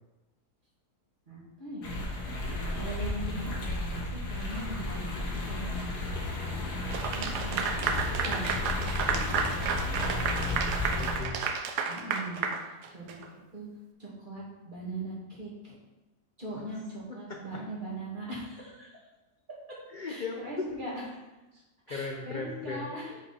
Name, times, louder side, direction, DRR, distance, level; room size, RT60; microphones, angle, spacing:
voice 1, 1.3-2.1 2.7-5.1 5.4-7.8 8.2-9.4 11.9-13.2 13.5-13.7 14.0-15.8 16.4-19.1 19.7-19.8 20.1-20.9 21.9-23.2, right 1 dB, 30° right, -6 dB, 2.4 m, -41 dB
sound 1, 1.8-11.2, left 2 dB, 85° left, 2.1 m, -33 dB
Clapping / Applause, 6.9-13.3, right 5 dB, 85° right, 1.3 m, -31 dB
voice 2, 10.3-11.4 16.5-16.6 17.3-17.4 19.9-20.6 21.5-22.9, left 4 dB, 55° left, 1 dB, 0.5 m, -38 dB
9.0 x 5.2 x 4.2 m, 1.1 s
omnidirectional pair, 1.7 m